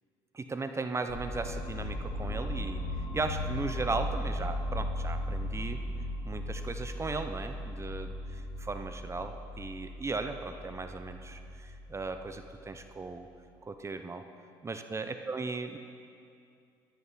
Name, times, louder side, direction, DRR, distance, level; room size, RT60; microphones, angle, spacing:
voice 1, 0.3-2.8 3.1-5.8 6.2-8.1 8.6-13.3 13.6-14.2 14.6-15.8, right 3 dB, 25° right, 8 dB, 0.8 m, -36 dB
sound 1, 1.1-13.0, left 1 dB, 65° left, 1.8 m, -37 dB
14.0 x 12.0 x 4.1 m, 2.4 s
hypercardioid pair, 65°, 12 cm